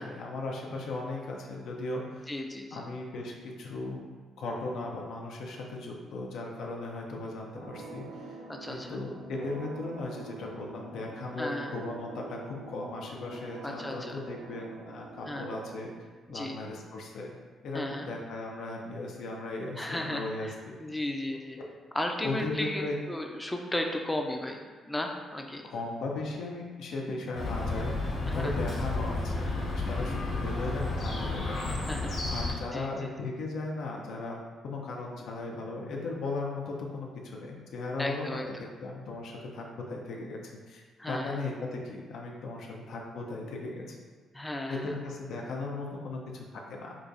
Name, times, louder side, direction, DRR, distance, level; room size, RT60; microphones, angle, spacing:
voice 1, 0.0-2.3 2.7-4.0 4.4-8.4 8.7-15.9 16.3-17.3 17.6-20.8 21.6-21.7 22.2-23.0 25.6-31.8 32.3-40.4 40.7-44.0 44.7-47.0, left 2 dB, 75° left, -1 dB, 0.5 m, -37 dB
voice 2, 2.3-2.8 8.5-9.0 11.4-11.7 13.6-14.2 15.3-15.5 16.3-16.6 17.7-18.1 19.8-20.5 20.8-21.6 21.9-24.6 24.9-25.7 28.3-28.5 31.7-32.1 32.7-33.1 38.0-38.5 41.0-41.4 44.3-44.9, left 1 dB, 10° left, 3 dB, 0.4 m, -35 dB
sound 1, 7.5-15.8, right 2 dB, 50° right, 0.8 m, -45 dB
Chirp tweet, 27.3-32.5, left 2 dB, 60° left, 0.9 m, -32 dB
4.8 x 2.3 x 2.6 m, 1.5 s
cardioid pair, 90°, 0 cm